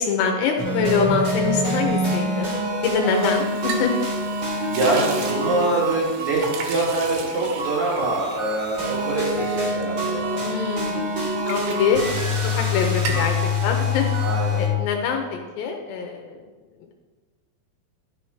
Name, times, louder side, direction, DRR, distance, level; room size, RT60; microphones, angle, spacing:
voice 1, 0.0-2.5 2.8-3.9 10.4-12.0 12.5-14.1 14.6-16.4, left 6 dB, 80° left, 2 dB, 2.8 m, -24 dB
sound 1, 0.6-14.7, left 1 dB, 35° right, 2.5 m, -25 dB
sound 2, 2.9-10.7 11.0-12.7 12.9-13.4, right 5 dB, 75° right, 2.9 m, -36 dB
voice 2, 4.7-10.4 14.2-14.6, right 2 dB, 55° right, -4 dB, 2.5 m, -24 dB
11.5 x 6.3 x 4.8 m, 1.4 s
omnidirectional pair, 5.1 m